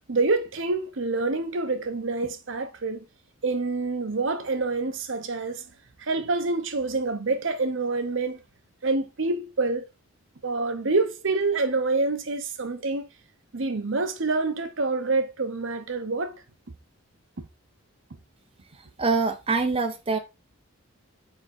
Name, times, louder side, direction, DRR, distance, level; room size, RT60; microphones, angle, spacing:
voice 1, 0.1-3.0 3.4-5.6 6.0-8.4 8.8-9.8 10.4-13.1 13.5-16.3 17.4-17.5, right 3 dB, 60° right, 0.8 m, -27 dB
voice 2, 19.0-20.2, right 4 dB, 25° right, 0.8 m, -24 dB
5.8 x 4.8 x 4.2 m
head